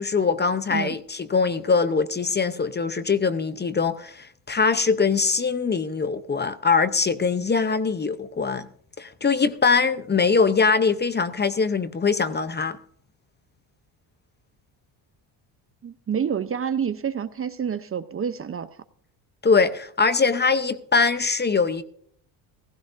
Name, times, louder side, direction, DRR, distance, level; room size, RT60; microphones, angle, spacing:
voice 1, 0.0-8.7 9.0-12.8 19.4-21.8, left 5 dB, 20° left, 0.7 m, -22 dB
voice 2, 15.8-18.7, right 7 dB, 30° right, 0.7 m, -28 dB
16.0 x 15.5 x 2.6 m
cardioid pair, 105°, 48 cm